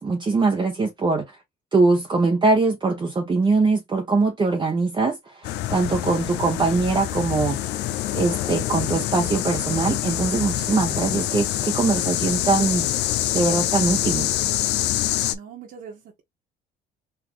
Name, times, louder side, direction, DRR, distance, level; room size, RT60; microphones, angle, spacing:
voice 1, 0.0-1.3 1.7-7.6 8.1-12.9 13.3-14.3, right 3 dB, 25° right, 0.8 m, -22 dB
sound 1, 5.4-15.3, left 13 dB, 85° left, 0.5 m, -25 dB
voice 2, 15.3-16.2, right 7 dB, 60° right, 1.3 m, -41 dB
4.0 x 2.6 x 3.0 m
cardioid pair, 110°, 17 cm